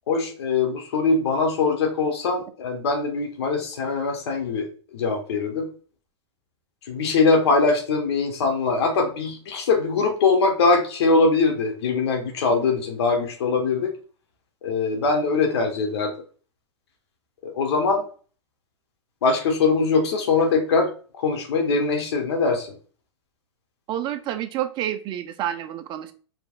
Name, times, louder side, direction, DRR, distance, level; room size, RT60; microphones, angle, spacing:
voice 1, 0.1-4.7 4.9-5.7 6.9-13.9 14.6-16.1 17.4-18.0 19.2-20.9 21.2-22.7, left 4 dB, 65° left, 3 dB, 1.1 m, -22 dB
voice 2, 23.9-26.1, right 11 dB, 30° right, 8 dB, 0.6 m, -29 dB
5.0 x 3.3 x 2.3 m, 0.39 s
hypercardioid pair, 105°, 15 cm